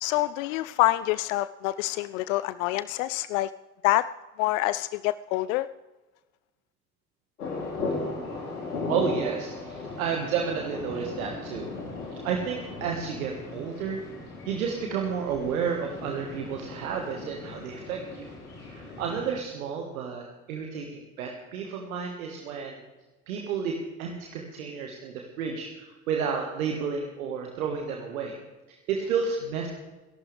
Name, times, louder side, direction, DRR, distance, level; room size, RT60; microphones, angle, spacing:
voice 1, 0.0-3.5 3.8-4.1 4.4-5.7, left 17 dB, 65° left, 16 dB, 0.5 m, -26 dB
sound 1, 7.4-19.3, left 3 dB, 80° left, 3.2 m, -37 dB
voice 2, 7.8-11.7 12.1-14.0 14.4-18.3 18.7-22.8 23.3-28.4 28.7-29.7, right 6 dB, 70° right, 2 dB, 1.7 m, -31 dB
27.5 x 11.5 x 3.4 m, 1.2 s
figure-of-eight pair, 55°, 43 cm